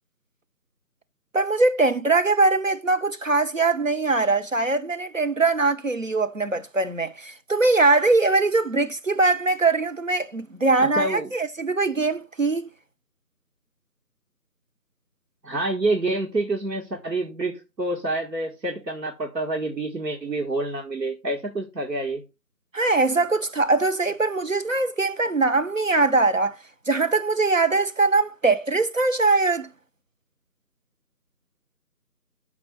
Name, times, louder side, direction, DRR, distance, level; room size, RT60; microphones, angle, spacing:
voice 1, 1.3-12.7 22.7-26.6 26.9-29.7, right 3 dB, 50° right, 0.8 m, -22 dB
voice 2, 10.8-11.3 15.4-22.2, right 2 dB, 80° right, 1.9 m, -27 dB
6.1 x 5.9 x 5.5 m
figure-of-eight pair, 175°, 50 cm